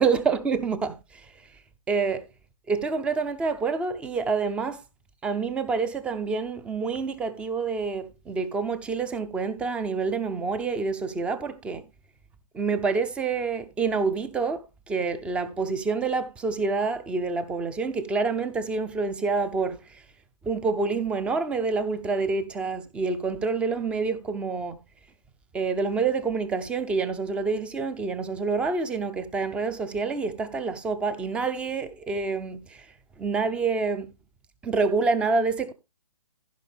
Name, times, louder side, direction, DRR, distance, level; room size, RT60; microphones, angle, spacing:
voice 1, 0.0-1.3 1.9-2.3 2.7-4.8 5.2-11.8 12.5-20.0 20.4-24.8 25.5-34.1 34.6-35.7, right 4 dB, 5° right, 0.6 m, -27 dB
15.0 x 5.6 x 3.5 m
hypercardioid pair, 150°, 20 cm